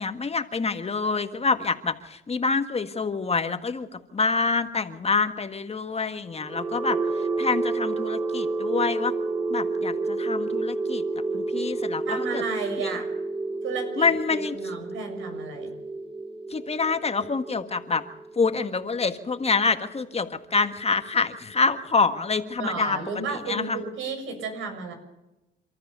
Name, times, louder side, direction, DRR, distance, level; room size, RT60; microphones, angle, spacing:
voice 1, 0.0-3.9 4.1-7.0 7.4-9.1 9.5-11.0 11.3-12.4 14.0-14.5 16.5-18.0 18.4-23.0 23.5-23.8, left 4 dB, 30° left, 8 dB, 1.7 m, -26 dB
sound 1, 6.3-20.2, right 3 dB, 30° right, 4.1 m, -30 dB
voice 2, 12.0-13.1 13.6-15.7 22.6-24.9, right 4 dB, 85° right, 5 dB, 6.7 m, -33 dB
29.0 x 13.5 x 6.9 m, 0.95 s
cardioid pair, 90°, 20 cm